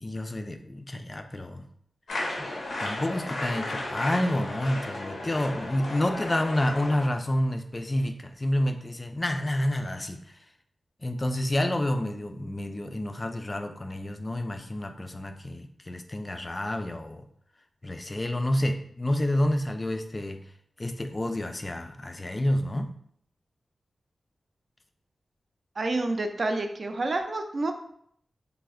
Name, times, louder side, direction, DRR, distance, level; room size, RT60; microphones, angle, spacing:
voice 1, 0.0-1.7 2.8-10.4 11.0-17.2 17.8-20.4 20.8-22.9, left 1 dB, 30° left, 7 dB, 0.3 m, -29 dB
sound 1, 2.1-7.1, left 1 dB, 90° left, 0.7 m, -34 dB
voice 2, 25.8-27.8, right 2 dB, 55° right, 5 dB, 0.4 m, -28 dB
3.2 x 2.0 x 3.5 m, 0.65 s
wide cardioid pair, 80°, 0 cm